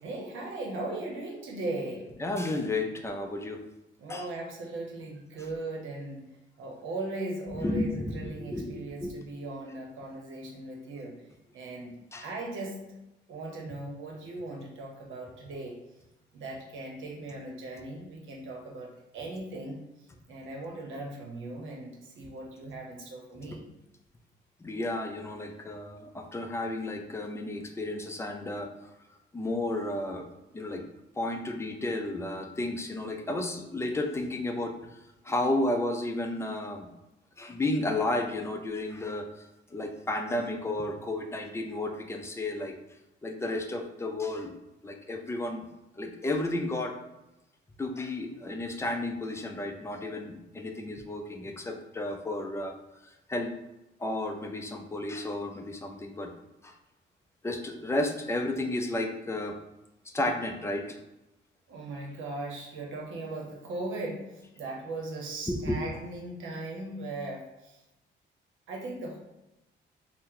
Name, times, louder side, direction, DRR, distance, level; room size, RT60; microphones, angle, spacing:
voice 1, 0.0-2.1 4.0-6.2 6.6-11.1 11.5-11.9 12.2-12.8 13.3-15.8 16.3-19.8 20.3-23.6 61.7-67.8 68.7-69.2, right 2 dB, 80° right, 0 dB, 0.8 m, -38 dB
voice 2, 2.2-3.6 4.1-4.3 7.5-9.2 12.1-12.3 23.5-23.6 24.6-28.9 29.3-30.3 30.5-30.9 31.2-34.7 35.2-36.9 37.4-42.7 43.2-45.7 46.0-46.9 47.8-52.7 53.0-53.5 54.0-56.3 56.6-56.7 57.4-59.6 60.1-61.0 65.5-65.8, left 2 dB, 15° left, 4 dB, 0.4 m, -32 dB
2.8 x 2.1 x 3.7 m, 0.95 s
cardioid pair, 90°, 20 cm